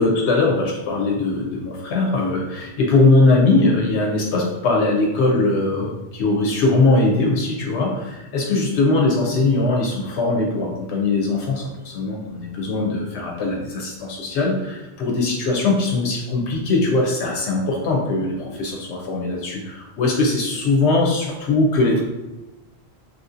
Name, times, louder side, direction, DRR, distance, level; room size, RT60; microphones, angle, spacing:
voice 1, 0.0-22.0, left 2 dB, 85° left, -1 dB, 0.9 m, -20 dB
3.1 x 2.7 x 2.5 m, 1.1 s
omnidirectional pair, 1.1 m